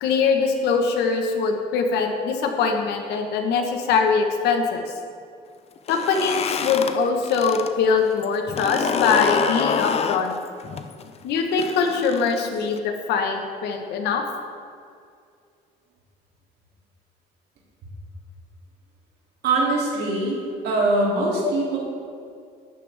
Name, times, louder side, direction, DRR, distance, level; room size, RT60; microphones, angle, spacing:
voice 1, 0.0-4.8 5.9-10.3 11.2-14.2 21.4-21.5, left 5 dB, 80° left, 4 dB, 1.3 m, -22 dB
sound 1, 5.8-7.7 8.0-12.8, left 6 dB, 40° left, 0.6 m, -27 dB
voice 2, 19.4-20.4 20.6-21.8, right 2 dB, 70° right, -4 dB, 2.9 m, -22 dB
12.0 x 8.8 x 3.5 m, 2.3 s
cardioid pair, 110°, 17 cm